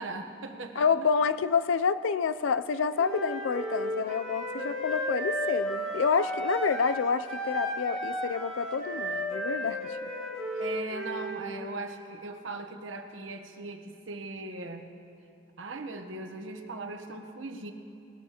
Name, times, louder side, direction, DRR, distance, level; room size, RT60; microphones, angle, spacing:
voice 1, 0.0-0.9 10.6-14.8 15.6-17.7, right 3 dB, 85° right, 6 dB, 1.0 m, -39 dB
voice 2, 0.8-10.0, left 5 dB, 75° left, 13 dB, 0.4 m, -28 dB
Wind instrument woodwind instrument, 3.0-7.0 7.3-11.5, equal, 5° left, 3.1 m, -33 dB
20.0 x 13.0 x 2.9 m, 2.7 s
head